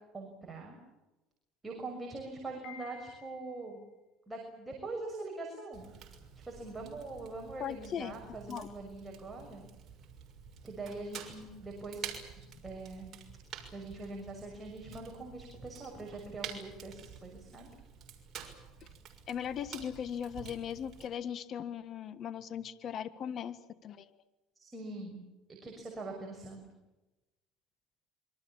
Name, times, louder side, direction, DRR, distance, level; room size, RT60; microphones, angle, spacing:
voice 1, 0.1-0.8 1.6-3.8 4.3-5.9 6.5-9.6 10.6-13.2 13.7-17.7 24.6-25.2 25.5-26.7, right 2 dB, 15° right, 0 dB, 6.4 m, -43 dB
Piano, 2.6-3.7, left 8 dB, 75° left, 7.3 m, -51 dB
Fire, 5.7-21.1, right 7 dB, 40° right, 6.3 m, -49 dB
voice 2, 7.6-8.2 8.5-8.7 19.3-24.1, left 8 dB, 45° left, 14 dB, 1.6 m, -38 dB
27.5 x 24.5 x 7.3 m, 1.0 s
cardioid pair, 125°, 0 cm